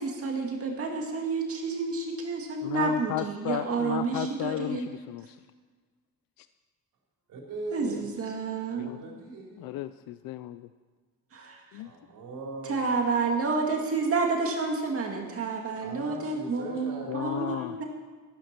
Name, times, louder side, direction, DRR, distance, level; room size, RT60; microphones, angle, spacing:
voice 1, 0.0-4.8 7.7-8.9 11.3-11.8 12.6-17.8, right 4 dB, 40° right, 1 dB, 2.1 m, -30 dB
voice 2, 2.6-5.4 6.4-6.5 8.8-9.0 9.6-10.7 11.7-11.9 17.1-17.8, left 13 dB, 80° left, 13 dB, 0.5 m, -34 dB
voice 3, 7.3-8.2 8.7-9.7 11.8-12.9 15.7-17.6, right 2 dB, 70° right, -1 dB, 3.9 m, -40 dB
14.0 x 12.0 x 6.0 m, 1.5 s
cardioid pair, 140°, 34 cm